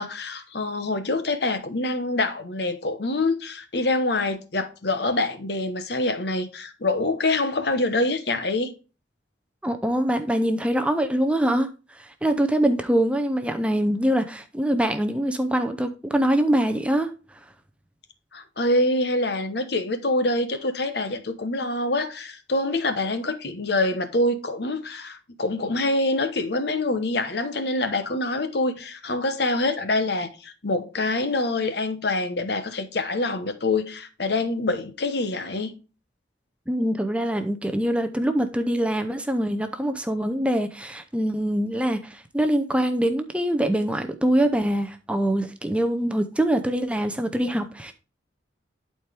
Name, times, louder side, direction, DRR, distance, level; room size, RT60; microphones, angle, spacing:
voice 1, 0.0-8.7 18.3-35.8, left 2 dB, 60° left, 1.0 m, -25 dB
voice 2, 9.6-17.1 36.7-47.9, right 1 dB, 5° right, 0.5 m, -24 dB
11.5 x 4.4 x 3.3 m
head